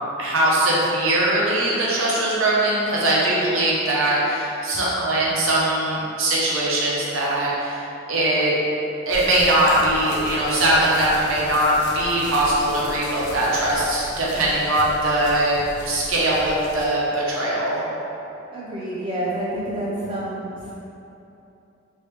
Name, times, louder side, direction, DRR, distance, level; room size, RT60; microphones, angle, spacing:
voice 1, 0.0-7.8 8.1-8.5 9.1-17.8, right 1 dB, 80° right, -6 dB, 0.7 m, -21 dB
sound 1, 9.1-16.9, left 1 dB, 55° left, 0.5 m, -37 dB
voice 2, 18.5-20.7, right 1 dB, 25° right, -8 dB, 0.6 m, -28 dB
3.1 x 2.7 x 3.3 m, 2.9 s
head